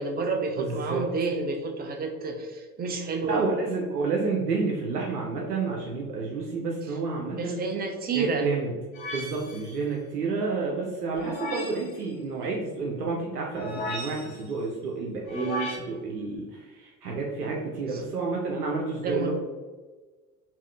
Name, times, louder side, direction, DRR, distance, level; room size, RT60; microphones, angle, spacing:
voice 1, 0.0-3.5 7.3-8.5 17.9-18.0 19.0-19.3, right 4 dB, 20° right, 4 dB, 0.5 m, -29 dB
voice 2, 0.6-1.0 3.2-7.6 8.1-8.7 9.1-19.3, right 4 dB, 85° right, -2 dB, 0.7 m, -30 dB
sound 1, 8.9-9.7 11.2-11.9 13.5-14.5 15.3-15.8, left 1 dB, 40° left, 0.8 m, -35 dB
3.5 x 2.6 x 3.2 m, 1.3 s
hypercardioid pair, 75°, 46 cm